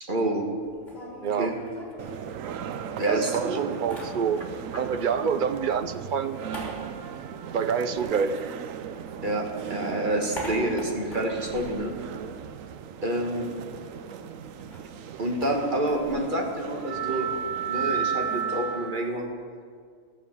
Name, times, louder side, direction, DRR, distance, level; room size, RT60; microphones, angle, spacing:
voice 1, 0.0-0.4 1.4-1.5 3.0-3.6 9.2-11.9 13.0-13.5 15.2-17.3 17.7-19.2, right 1 dB, 40° right, 1 dB, 1.6 m, -28 dB
sound 1, 0.6-2.8 3.1-4.8 5.0-9.2 9.5-12.8 13.1-13.2 13.4-19.2, equal, 35° left, 3.6 m, -44 dB
voice 2, 1.2-1.6 3.1-4.4 4.8-6.4 7.5-8.4, right 6 dB, 60° right, 11 dB, 0.5 m, -27 dB
sound 2, 2.0-19.1, right 8 dB, 90° right, 1.0 m, -35 dB
14.5 x 7.0 x 7.3 m, 2.1 s
omnidirectional pair, 1.3 m